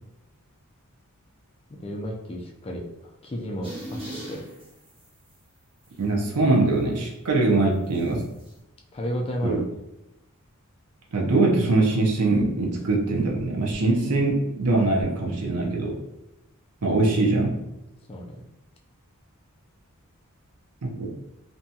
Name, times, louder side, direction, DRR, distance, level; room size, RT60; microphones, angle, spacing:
voice 1, 1.7-4.4 8.9-9.7 18.1-18.4, equal, 25° left, 0 dB, 0.3 m, -33 dB
sound 1, 3.6-5.3 5.8-6.0 7.9-8.5, right 1 dB, 25° right, 0.8 m, -39 dB
voice 2, 6.0-8.2 9.4-9.6 11.1-16.0 16.8-17.6 20.8-21.1, right 2 dB, 85° right, 0 dB, 0.6 m, -22 dB
2.6 x 2.2 x 2.7 m, 0.91 s
head